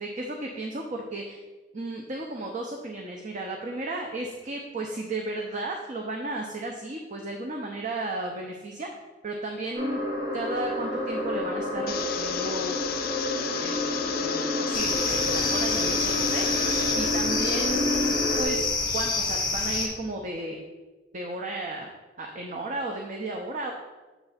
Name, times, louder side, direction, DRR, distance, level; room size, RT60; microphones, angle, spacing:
voice 1, 0.0-1.4 1.7-8.9 9.2-10.0 10.3-12.8 13.6-16.4 16.9-20.6 21.1-21.9 22.2-23.7, right 2 dB, 45° right, 1 dB, 0.6 m, -34 dB
sound 1, 9.7-18.4, left 1 dB, 90° right, 2.1 m, -29 dB
sound 2, 11.9-16.9, left 10 dB, 55° left, 0.4 m, -34 dB
sound 3, 14.7-19.9, left 3 dB, 25° left, 1.0 m, -27 dB
7.1 x 3.3 x 5.6 m, 1.2 s
head